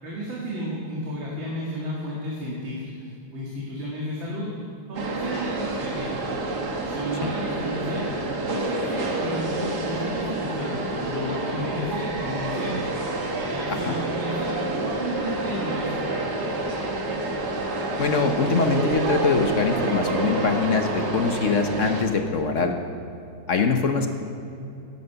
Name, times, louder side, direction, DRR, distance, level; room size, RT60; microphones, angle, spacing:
voice 1, 0.0-4.5 4.9-6.2 6.9-8.1 8.5-12.8 13.4-16.3, equal, 90° right, -5 dB, 2.9 m, -32 dB
sound 1, 4.9-22.0, right 2 dB, 55° right, 2.1 m, -28 dB
voice 2, 18.0-22.7 23.5-24.1, left 4 dB, 50° left, 5 dB, 1.1 m, -23 dB
16.5 x 10.5 x 6.8 m, 2.7 s
omnidirectional pair, 2.1 m